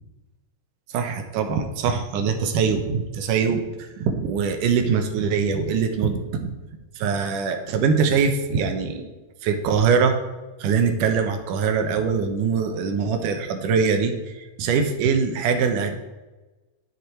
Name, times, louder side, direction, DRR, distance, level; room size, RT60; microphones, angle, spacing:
voice 1, 0.9-6.5 7.0-9.1 9.4-10.2 10.6-16.0, right 5 dB, 70° right, 6 dB, 2.4 m, -23 dB
9.9 x 9.6 x 4.5 m, 1.2 s
omnidirectional pair, 4.1 m